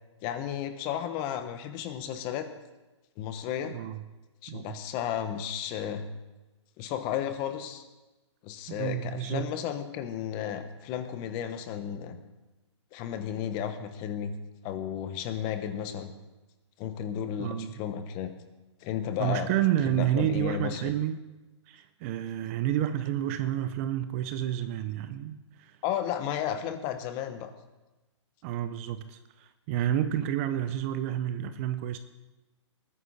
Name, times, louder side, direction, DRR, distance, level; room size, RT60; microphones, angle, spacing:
voice 1, 0.2-2.5 3.2-3.7 4.4-6.1 6.8-7.8 8.4-12.2 12.9-14.3 14.6-16.1 16.8-18.3 18.8-19.5 19.8-20.9 25.8-27.5, left 9 dB, 25° left, 9 dB, 1.1 m, -33 dB
voice 2, 3.7-4.0 4.5-4.7 8.7-9.5 17.4-17.7 19.2-21.2 21.7-25.8 28.4-32.0, right 11 dB, 30° right, 11 dB, 0.6 m, -30 dB
20.0 x 9.9 x 4.2 m, 1.1 s
hypercardioid pair, 150°, 16 cm